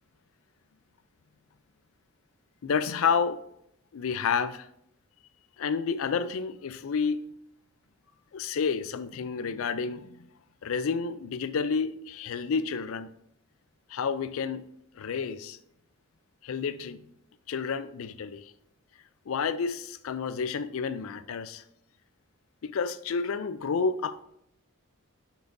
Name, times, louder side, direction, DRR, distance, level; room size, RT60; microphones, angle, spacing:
voice 1, 2.6-3.4 3.9-4.7 5.6-7.3 8.3-10.2 10.6-13.1 13.9-14.6 14.9-15.6 16.4-17.1 17.5-18.5 19.3-21.6 22.6-24.2, left 5 dB, 65° left, 13 dB, 0.4 m, -30 dB
6.9 x 5.9 x 2.6 m, 0.74 s
head